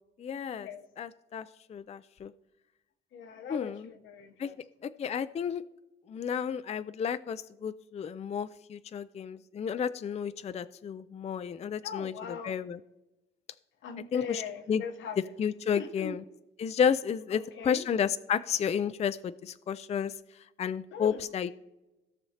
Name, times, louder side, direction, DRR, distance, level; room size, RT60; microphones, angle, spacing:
voice 1, 0.2-0.7 1.0-2.3 3.5-3.9 4.4-4.5 4.8-5.6 6.1-12.8 14.1-14.4 14.7-14.8 15.4-16.2 16.6-20.1 20.6-21.5, left 7 dB, 35° left, 0.4 m, -32 dB
voice 2, 3.1-4.5 11.8-12.5 13.8-15.3 15.7-16.1 17.3-17.8 20.9-21.2, left 6 dB, 75° left, 1.0 m, -40 dB
16.5 x 6.1 x 2.8 m
cardioid pair, 90°, 20 cm